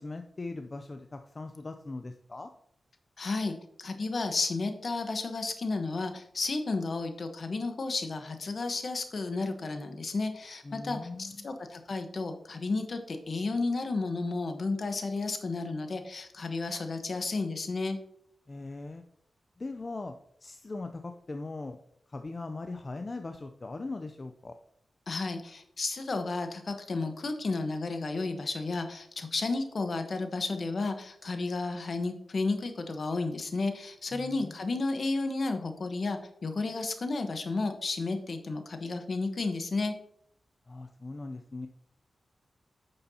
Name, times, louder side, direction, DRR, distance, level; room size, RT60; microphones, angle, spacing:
voice 1, 0.0-2.5 10.6-11.5 18.5-19.0 19.6-20.1 20.4-21.8 22.1-24.5 34.1-34.8 40.7-41.7, left 3 dB, 40° left, 7 dB, 0.6 m, -40 dB
voice 2, 3.2-18.0 25.1-39.9, left 3 dB, 60° left, 7 dB, 1.1 m, -32 dB
9.3 x 6.7 x 2.8 m, 0.70 s
cardioid pair, 60°, 0 cm